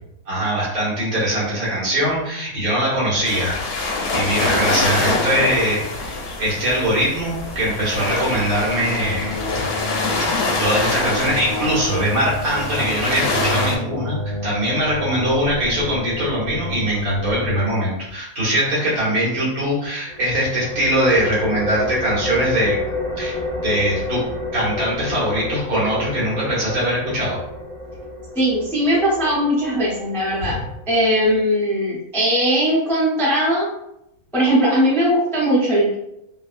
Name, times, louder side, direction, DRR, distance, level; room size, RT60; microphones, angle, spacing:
voice 1, 0.3-3.6 4.1-6.1 6.4-9.6 10.2-22.8 23.2-24.2 24.5-27.4 30.4-30.6, right 1 dB, 80° right, -8 dB, 1.8 m, -22 dB
sound 1, 3.2-13.8, left 3 dB, 65° left, 0.6 m, -25 dB
sound 2, 7.4-17.6, left 1 dB, 50° right, 1.5 m, -30 dB
sound 3, 20.1-31.4, left 2 dB, 35° right, 0.8 m, -30 dB
voice 2, 28.3-30.6 30.9-33.7 34.3-35.9, equal, 5° left, -6 dB, 0.3 m, -19 dB
3.3 x 2.2 x 2.4 m, 0.82 s
omnidirectional pair, 1.5 m